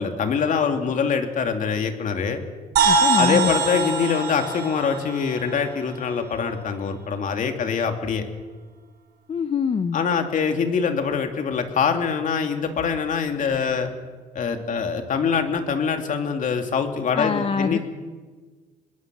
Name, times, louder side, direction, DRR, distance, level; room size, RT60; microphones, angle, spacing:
voice 1, 0.0-2.4 3.2-8.3 9.9-13.9 14.3-17.8, left 6 dB, 50° left, 5 dB, 2.7 m, -24 dB
voice 2, 2.8-3.5 9.3-10.0 17.1-17.8, left 6 dB, 35° left, 9 dB, 0.9 m, -24 dB
sound 1, 2.8-6.5, right 4 dB, 75° right, 4.1 m, -24 dB
24.5 x 21.0 x 6.3 m, 1.4 s
cardioid pair, 110°, 17 cm